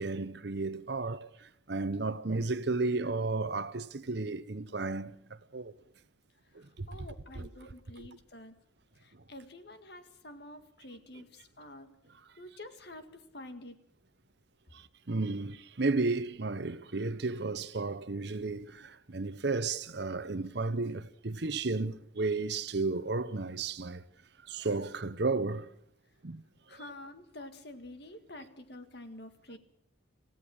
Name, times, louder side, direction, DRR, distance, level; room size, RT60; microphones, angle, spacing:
voice 1, 0.0-5.2 5.5-5.7 6.5-6.9 7.4-7.5 14.7-24.0 24.5-25.7 26.2-26.4, right 3 dB, 55° right, 0.9 m, -33 dB
voice 2, 6.5-8.6 9.0-12.0 12.4-13.8 26.7-29.6, left 1 dB, 55° left, 1.9 m, -48 dB
26.5 x 16.0 x 6.5 m
head